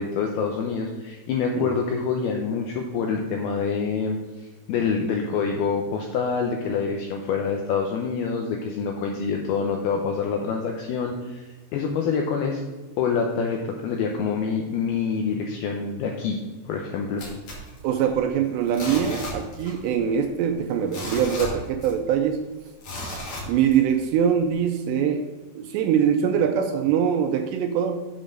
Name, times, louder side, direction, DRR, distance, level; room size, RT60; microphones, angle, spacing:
voice 1, 0.0-12.6 13.0-16.4 16.6-17.2, left 5 dB, 85° left, 2 dB, 2.3 m, -26 dB
sound 1, 17.2-18.3 18.7-19.9 20.1-20.2 20.7-22.2 22.8-24.0 24.5-24.6, left 1 dB, 50° left, 3.2 m, -34 dB
voice 2, 17.8-22.4 23.5-25.3 25.6-28.1, right 8 dB, 80° right, 6 dB, 2.6 m, -23 dB
7.9 x 5.3 x 6.4 m, 1.2 s
omnidirectional pair, 5.3 m